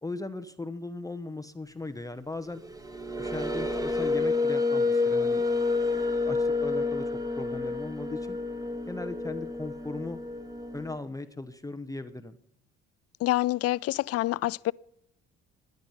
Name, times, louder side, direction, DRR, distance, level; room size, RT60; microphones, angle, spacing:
voice 1, 0.0-2.6 3.2-5.4 5.8-7.1 7.4-8.4 8.9-10.2 10.7-12.4, left 2 dB, 10° left, 0.8 m, -38 dB
sound 1, 2.5-11.0, left 3 dB, 10° right, 1.4 m, -29 dB
voice 2, 13.2-14.7, left 16 dB, 45° left, 0.4 m, -27 dB
16.0 x 10.5 x 5.6 m
hypercardioid pair, 55°, 34 cm